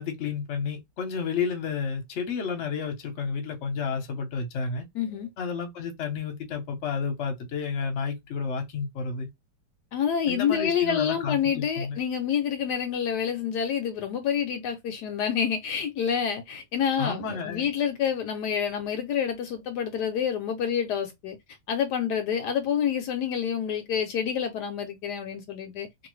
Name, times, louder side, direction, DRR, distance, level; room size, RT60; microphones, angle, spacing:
voice 1, 0.0-4.9 5.4-9.3 10.3-12.0 17.0-17.7, left 5 dB, 50° left, 1.0 m, -31 dB
voice 2, 4.9-5.3 9.9-21.4 21.7-25.9, left 8 dB, 75° left, 1.1 m, -28 dB
2.8 x 2.6 x 3.1 m
omnidirectional pair, 1.9 m